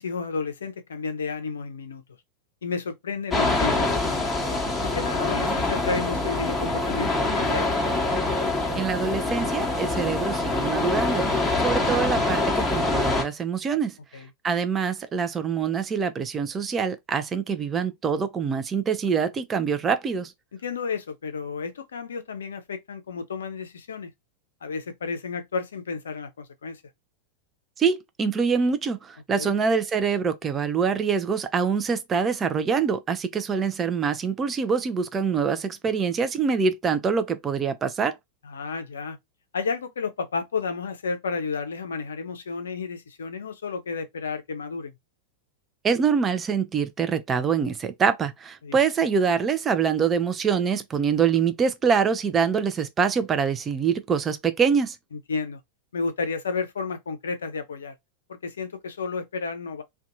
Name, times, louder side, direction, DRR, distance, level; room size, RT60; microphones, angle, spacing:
voice 1, 0.0-2.0 2.6-4.2 4.8-7.7 14.1-14.3 20.5-24.1 24.6-26.8 29.3-29.5 38.4-39.2 39.5-44.9 48.6-48.8 55.1-55.6 55.9-57.9 58.3-59.8, left 4 dB, 65° left, 0.5 m, -32 dB
sound 1, 3.3-13.2, left 2 dB, 5° left, 0.9 m, -25 dB
voice 2, 8.8-13.9 14.4-20.3 27.8-38.1 45.8-55.0, right 6 dB, 20° right, 0.4 m, -25 dB
2.5 x 2.2 x 2.5 m
figure-of-eight pair, 90°, 0 cm